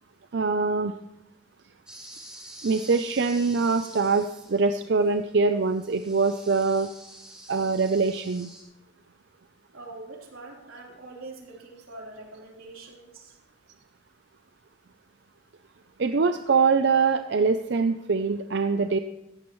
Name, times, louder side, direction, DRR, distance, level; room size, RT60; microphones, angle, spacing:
voice 1, 0.3-0.9 2.6-6.9 7.5-8.5 16.0-19.0, right 4 dB, 55° right, 8 dB, 0.5 m, -23 dB
sound 1, 1.9-4.7 5.0-5.1 5.6-8.6, right 1 dB, 5° right, 3.0 m, -46 dB
voice 2, 9.7-13.4, right 2 dB, 90° right, -2 dB, 3.7 m, -44 dB
16.5 x 14.5 x 3.1 m, 0.88 s
head